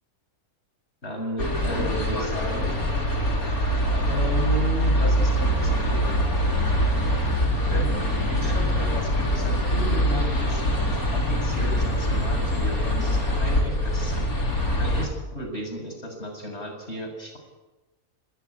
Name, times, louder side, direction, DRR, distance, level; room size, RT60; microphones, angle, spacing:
voice 1, 1.0-2.8 4.1-6.0 7.7-8.0 8.3-10.6 11.1-14.1 14.8-17.4, right 1 dB, 50° left, 3 dB, 7.6 m, -33 dB
sound 1, 1.4-15.1, equal, 90° left, 5.1 m, -23 dB
28.0 x 20.0 x 9.9 m, 1.1 s
omnidirectional pair, 1.5 m